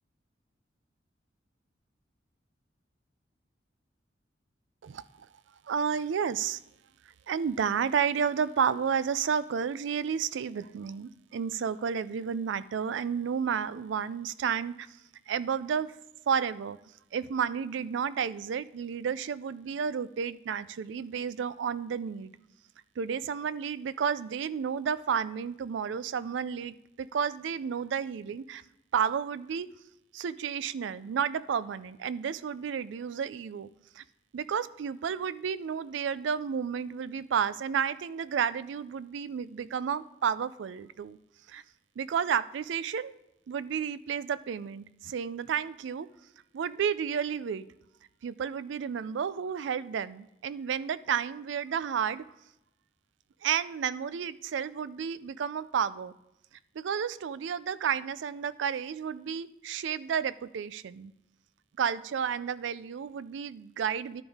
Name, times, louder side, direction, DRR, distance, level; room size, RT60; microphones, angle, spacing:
voice 1, 5.7-6.6 7.3-14.9 15.3-15.9 16.3-16.8 17.1-22.3 23.0-28.6 28.9-29.7 30.1-33.7 34.0-34.1 34.3-41.2 41.5-41.6 42.0-43.1 43.5-46.1 46.5-47.7 48.2-52.2 53.4-56.1 56.8-61.1 61.8-64.2, right 7 dB, 75° right, 16 dB, 0.3 m, -31 dB
11.5 x 5.3 x 3.5 m, 0.88 s
head